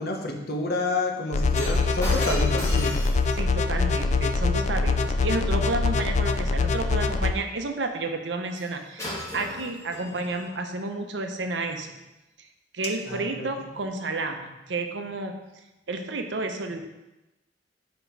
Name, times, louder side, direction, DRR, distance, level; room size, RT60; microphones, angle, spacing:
voice 1, 0.0-3.0 13.0-13.7, left 2 dB, 60° left, 2 dB, 1.0 m, -29 dB
sound 1, 1.3-7.3, left 3 dB, 40° left, 0.4 m, -24 dB
Shatter, 1.6-5.9 8.5-8.7 9.0-10.5 11.2-11.4, left 1 dB, 15° left, 2.4 m, -38 dB
voice 2, 3.3-11.9 12.7-15.4 15.9-16.8, right 2 dB, 75° right, 5 dB, 0.7 m, -31 dB
6.0 x 5.2 x 4.6 m, 1.0 s
head